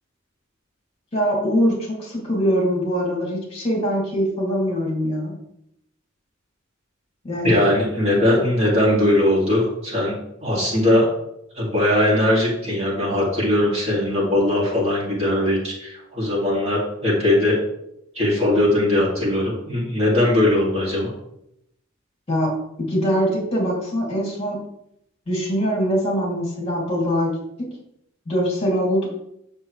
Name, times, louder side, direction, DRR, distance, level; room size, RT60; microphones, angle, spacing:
voice 1, 1.1-5.3 7.2-7.6 22.3-22.5 22.9-24.6 25.3-27.3 28.3-29.1, equal, 30° left, -3 dB, 2.8 m, -22 dB
voice 2, 7.4-10.1 10.4-11.1 11.6-17.6 18.1-21.1, left 1 dB, 30° right, -5 dB, 2.8 m, -20 dB
8.8 x 6.9 x 3.3 m, 0.78 s
head